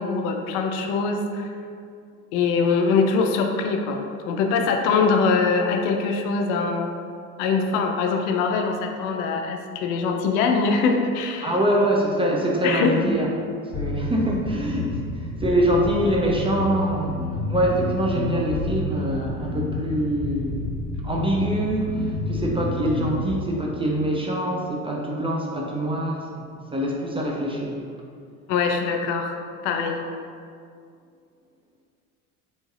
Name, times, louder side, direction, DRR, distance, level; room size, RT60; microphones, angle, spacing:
voice 1, 0.0-1.5 2.3-6.9 7.4-11.5 12.6-13.1 28.5-29.4 29.6-30.0, left 4 dB, 60° left, 3 dB, 0.5 m, -23 dB
voice 2, 11.4-13.3 13.7-17.2 17.5-20.7 21.0-26.4 26.7-27.8, right 1 dB, 15° right, -2 dB, 0.4 m, -24 dB
sound 1, 13.7-23.3, left 2 dB, 40° left, 1.2 m, -29 dB
3.9 x 3.5 x 2.4 m, 2.3 s
hypercardioid pair, 65°, 41 cm